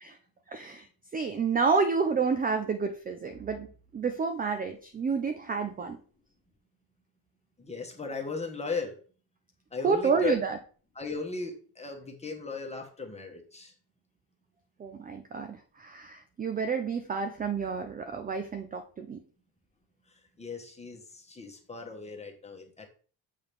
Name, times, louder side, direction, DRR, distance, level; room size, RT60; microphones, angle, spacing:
voice 1, 0.5-0.9 1.1-3.7 3.9-6.0 9.8-10.6 14.8-19.2, right 5 dB, 20° right, 7 dB, 0.3 m, -29 dB
voice 2, 7.6-8.9 9.7-10.4 10.9-13.7 20.4-22.9, left 4 dB, 15° left, 2 dB, 1.2 m, -36 dB
7.2 x 3.8 x 3.3 m, 0.40 s
cardioid pair, 135°, 47 cm